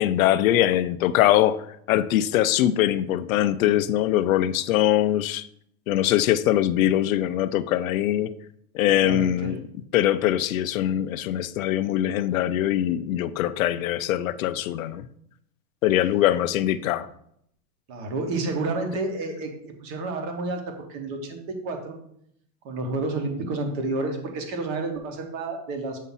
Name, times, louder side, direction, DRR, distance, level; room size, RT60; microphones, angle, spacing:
voice 1, 0.0-1.6 1.9-5.5 5.9-8.3 8.7-9.6 9.9-15.1 15.8-17.1, left 12 dB, 70° left, 14 dB, 0.5 m, -22 dB
voice 2, 9.0-9.5 17.9-22.0 22.6-26.0, right 2 dB, 30° right, 4 dB, 1.0 m, -30 dB
7.3 x 2.7 x 5.5 m, 0.71 s
supercardioid pair, 170°, 43 cm